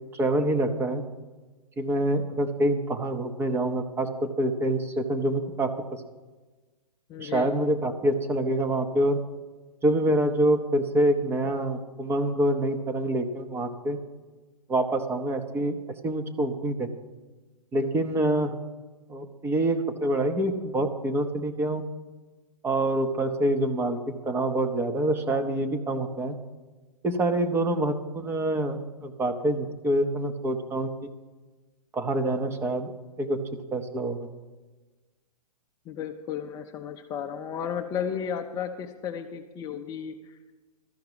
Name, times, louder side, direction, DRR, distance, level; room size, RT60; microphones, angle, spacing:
voice 1, 0.1-1.0 1.8-5.7 7.2-9.2 9.8-14.0 14.7-15.7 16.0-16.9 17.7-18.5 19.1-21.8 22.6-24.0 24.3-26.4 27.0-31.1 31.9-32.9 33.2-33.4 33.7-34.2, right 1 dB, 10° right, 6 dB, 0.8 m, -26 dB
voice 2, 7.1-7.5 35.9-40.5, left 8 dB, 20° left, 4 dB, 0.6 m, -34 dB
13.5 x 5.7 x 8.7 m, 1.3 s
figure-of-eight pair, 120°, 20 cm